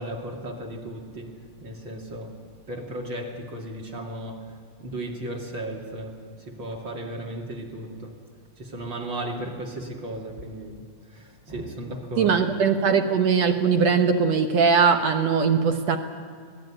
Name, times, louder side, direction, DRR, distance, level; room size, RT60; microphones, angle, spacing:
voice 1, 0.0-2.4 2.7-4.5 4.8-8.2 8.6-10.8 11.1-12.3, right 1 dB, 35° right, 2.6 m, -35 dB
voice 2, 12.2-16.0, right 5 dB, 65° right, 1.9 m, -20 dB
25.5 x 18.0 x 10.0 m
omnidirectional pair, 4.3 m